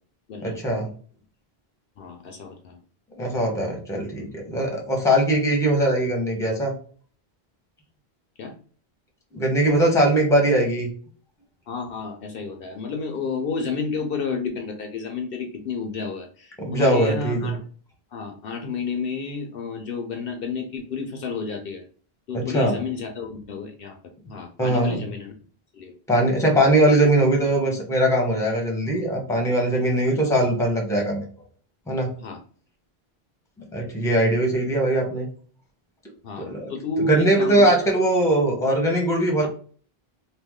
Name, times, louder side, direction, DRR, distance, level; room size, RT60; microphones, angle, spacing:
voice 1, 0.4-0.9 3.2-6.7 9.3-10.9 16.7-17.5 22.3-22.8 24.6-25.0 26.1-31.3 31.9-32.1 33.7-35.3 36.4-36.7 37.0-39.5, right 1 dB, 5° left, 0 dB, 0.8 m, -21 dB
voice 2, 2.0-2.8 8.4-8.5 11.7-17.6 18.1-21.8 22.3-24.0 24.3-25.3 25.7-25.9 30.1-30.2 32.2-32.4 36.2-37.7 39.4-39.5, left 4 dB, 65° left, 4 dB, 0.8 m, -31 dB
3.1 x 2.3 x 3.6 m, 0.44 s
omnidirectional pair, 1.0 m